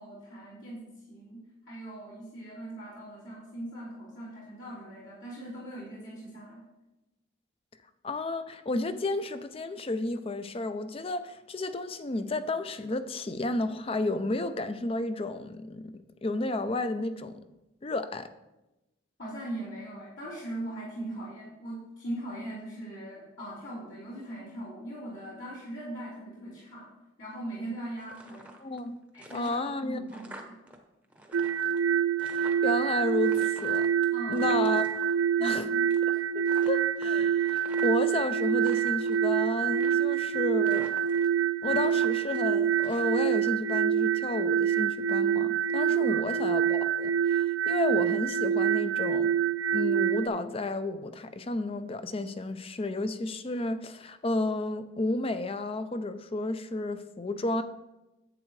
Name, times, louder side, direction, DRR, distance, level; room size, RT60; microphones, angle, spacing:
voice 1, 0.0-6.6 19.2-26.9 27.2-28.5 29.1-30.6 34.1-34.5 35.4-35.8 36.1-36.2 45.9-46.3, right 1 dB, 65° left, -10 dB, 3.6 m, -40 dB
voice 2, 8.0-15.9 16.2-17.4 17.8-18.3 28.6-29.0 29.3-30.0 32.2-33.9 34.3-34.9 35.4-35.6 36.1-40.9 41.6-49.3 49.7-57.6, left 2 dB, 30° left, 11 dB, 0.4 m, -32 dB
sound 1, 28.0-28.9 29.1-30.8 31.0-32.8 33.2-35.6 35.9-36.2 36.4-38.1 38.5-39.2 39.7-40.3 40.7-41.4 41.7-43.5, right 1 dB, 5° right, 0.8 m, -48 dB
sound 2, 31.3-50.3, right 8 dB, 70° right, 0.4 m, -26 dB
11.0 x 7.9 x 3.2 m, 1.0 s
head